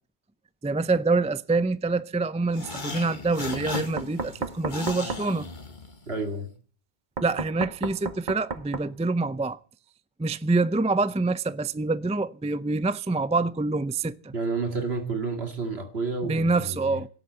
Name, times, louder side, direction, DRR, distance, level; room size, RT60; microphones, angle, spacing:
voice 1, 0.6-5.5 7.2-9.6 10.2-14.3 16.2-17.1, right 3 dB, 10° right, 0.4 m, -26 dB
sound 1, 2.5-6.2, left 3 dB, 45° left, 1.7 m, -37 dB
Knock, 3.5-5.3 7.2-8.9, right 4 dB, 45° right, 1.0 m, -33 dB
voice 2, 6.1-6.5 14.3-17.0, right 3 dB, 70° right, 2.5 m, -30 dB
17.5 x 8.1 x 7.8 m
omnidirectional pair, 1.1 m